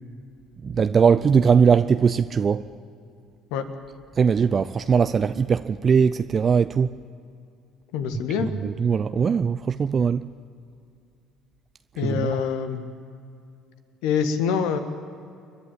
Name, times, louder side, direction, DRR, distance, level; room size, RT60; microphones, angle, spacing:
voice 1, 0.6-2.6 4.2-7.0 8.6-10.3 12.0-12.4, right 6 dB, 35° right, 0.5 m, -20 dB
voice 2, 7.9-8.5 12.0-12.8 14.0-14.8, left 7 dB, 65° left, 1.5 m, -25 dB
29.0 x 11.5 x 8.8 m
figure-of-eight pair, 55°, 0 cm